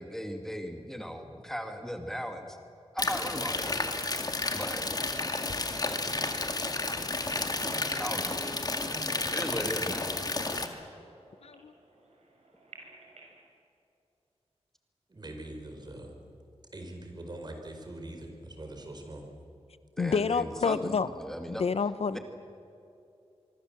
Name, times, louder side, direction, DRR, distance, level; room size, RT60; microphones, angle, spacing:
voice 1, 0.0-2.6 2.9-3.9 4.5-4.8 8.0-8.4 9.3-10.1 20.0-21.7 22.1-22.2, equal, 5° left, 5 dB, 2.0 m, -37 dB
sound 1, 3.0-10.7, left 2 dB, 35° left, 2.1 m, -31 dB
sound 2, 6.6-13.4, right 1 dB, 75° right, 6.1 m, -52 dB
voice 2, 11.4-11.7 20.0-21.1 21.5-22.2, left 5 dB, 65° left, 14 dB, 0.7 m, -28 dB
voice 3, 15.1-16.2 16.7-19.3, right 1 dB, 40° right, 4 dB, 4.5 m, -43 dB
24.5 x 24.0 x 7.7 m, 2.7 s
wide cardioid pair, 95°, 11 cm